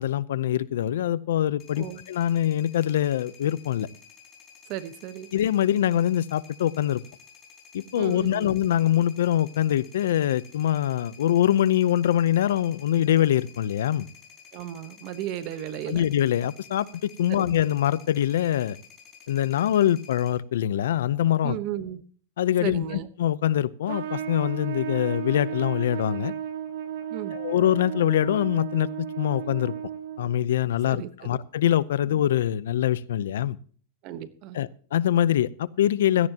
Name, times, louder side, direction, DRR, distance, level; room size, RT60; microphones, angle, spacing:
voice 1, 0.0-3.9 5.3-7.0 7.7-14.1 15.9-18.8 19.3-21.6 22.4-22.8 23.2-26.3 27.3-29.7 30.2-33.6 34.5-36.3, left 11 dB, 85° left, 0.7 m, -24 dB
sound 1, 1.6-20.3, left 7 dB, 20° left, 4.6 m, -51 dB
voice 2, 4.7-5.3 7.9-8.5 14.5-16.0 17.3-17.5 21.4-22.0 22.6-23.1 27.1-27.4 30.9-31.4 34.0-34.6, right 12 dB, 35° right, 1.1 m, -35 dB
Trumpet, 23.9-30.4, right 9 dB, 60° right, 1.5 m, -34 dB
17.0 x 13.0 x 2.9 m
supercardioid pair, 165°, 0 cm